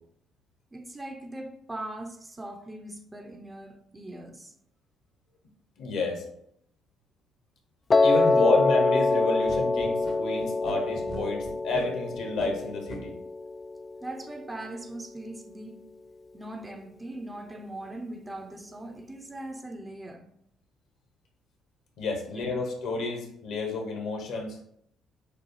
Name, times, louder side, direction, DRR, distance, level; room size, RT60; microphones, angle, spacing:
voice 1, 0.7-4.5 8.3-8.7 14.0-15.9 16.3-20.3 22.3-22.6, right 1 dB, 20° right, 0.7 m, -40 dB
voice 2, 5.8-6.2 8.0-13.1 22.0-24.6, left 3 dB, 60° left, 1.0 m, -30 dB
Piano, 7.9-14.0, left 3 dB, 30° left, 0.3 m, -25 dB
sound 1, 9.4-13.0, right 2 dB, 40° right, 1.1 m, -42 dB
6.7 x 2.3 x 3.1 m
figure-of-eight pair, 45°, 0 cm